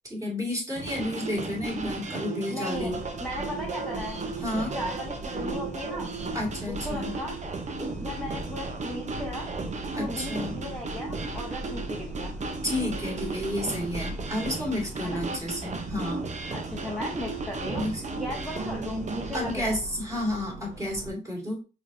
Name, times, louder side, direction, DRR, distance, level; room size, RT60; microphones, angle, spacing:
voice 1, 0.0-3.0 4.4-4.7 6.3-7.1 9.9-10.6 12.6-16.3 17.8-18.0 19.3-21.6, left 1 dB, 15° right, -2 dB, 2.4 m, -31 dB
sound 1, 0.7-19.5, right 3 dB, 35° right, 0.9 m, -35 dB
voice 2, 2.5-2.9 3.2-4.2 4.5-6.1 6.7-7.4 7.8-9.5 10.0-12.3 15.0-15.2 16.5-19.8, left 1 dB, 5° left, -3 dB, 1.0 m, -36 dB
sound 2, 2.7-21.1, right 1 dB, 75° right, 1.3 m, -41 dB
4.6 x 3.5 x 2.7 m, 0.32 s
cardioid pair, 90°, 20 cm